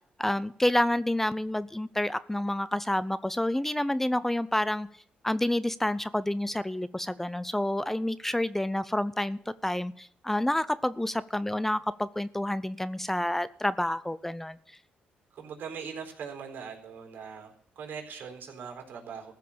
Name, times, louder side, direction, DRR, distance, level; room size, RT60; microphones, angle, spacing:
voice 1, 0.2-4.9 5.2-14.6, left 1 dB, 10° left, 16 dB, 0.5 m, -29 dB
voice 2, 15.3-19.3, right 6 dB, 65° right, 3 dB, 4.1 m, -41 dB
15.0 x 5.8 x 8.6 m, 0.68 s
cardioid pair, 80°, 3 cm